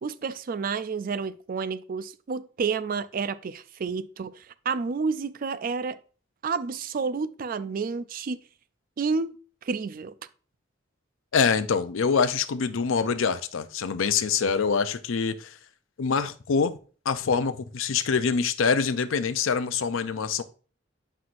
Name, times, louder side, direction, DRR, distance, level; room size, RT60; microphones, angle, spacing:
voice 1, 0.0-6.0 6.4-8.4 9.0-9.3 9.6-10.1, right 5 dB, 45° right, 0.4 m, -30 dB
voice 2, 11.3-15.5 16.0-16.7 17.1-20.4, left 5 dB, 90° left, 0.5 m, -25 dB
7.7 x 5.6 x 2.5 m
head